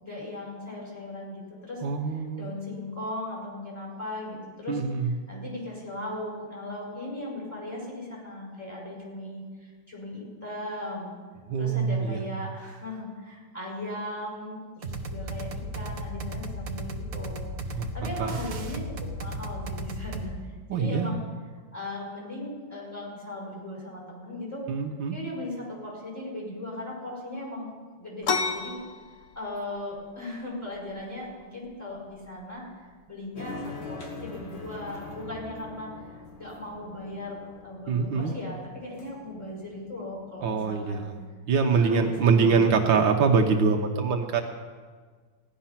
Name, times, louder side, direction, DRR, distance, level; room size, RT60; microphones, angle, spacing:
voice 1, 0.0-1.8 2.4-11.1 11.6-20.3 20.7-21.2 21.7-24.6 25.1-27.7 28.0-28.7 29.3-35.9 36.4-41.1 41.7-42.7, left 1 dB, 10° left, -4 dB, 5.0 m, -38 dB
voice 2, 1.8-2.5 4.7-5.1 11.5-12.2 17.7-17.9 18.2-18.4 20.7-21.1 24.7-25.2 37.9-38.3 40.4-41.1 41.5-44.4, right 5 dB, 80° right, 3 dB, 1.7 m, -24 dB
sound 1, 14.8-20.3, right 1 dB, 50° right, 1.3 m, -35 dB
sound 2, 28.2-37.6, left 5 dB, 50° left, 1.2 m, -38 dB
sound 3, 33.4-40.8, left 3 dB, 80° left, 2.8 m, -44 dB
16.5 x 11.0 x 5.8 m, 1.5 s
omnidirectional pair, 2.1 m